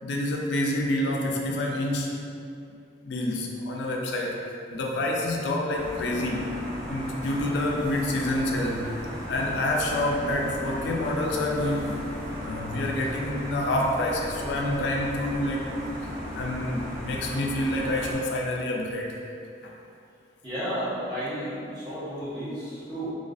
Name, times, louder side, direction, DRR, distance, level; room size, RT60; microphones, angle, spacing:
voice 1, 0.0-2.1 3.0-4.4 4.7-6.6 6.9-8.9 9.3-15.7 16.3-19.1 19.6-19.7, left 1 dB, 75° left, 0 dB, 0.3 m, -28 dB
sound 1, 5.7-18.1, equal, ahead, 1.2 m, -36 dB
voice 2, 20.4-23.1, equal, 25° right, -13 dB, 0.9 m, -32 dB
2.3 x 2.3 x 2.5 m, 2.5 s
head